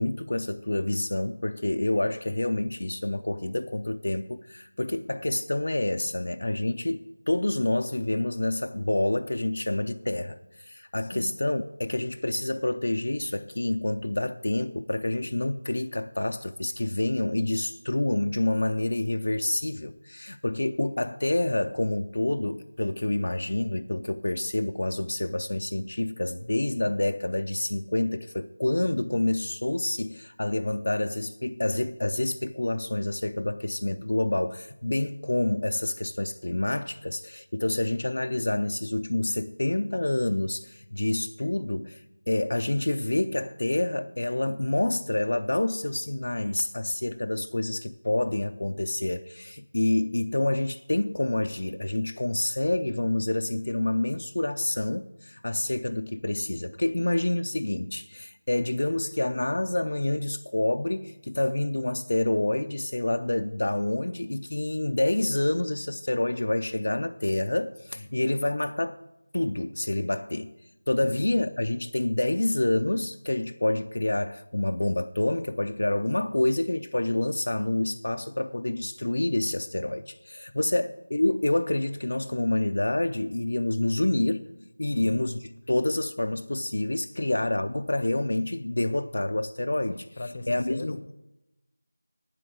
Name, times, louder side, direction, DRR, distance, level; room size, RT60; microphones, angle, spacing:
voice 1, 0.0-42.0 42.3-69.0 69.3-70.5 70.9-84.5 84.8-85.4 85.7-90.0 90.5-91.0, left 1 dB, 60° left, 0.4 m, -28 dB
voice 2, 11.0-11.4 67.9-68.1 71.0-71.4 80.7-80.8 84.9-85.3 87.1-87.5 89.9-91.2, left 2 dB, 30° left, 0.7 m, -41 dB
9.3 x 7.8 x 8.5 m
figure-of-eight pair, 175°, 0 cm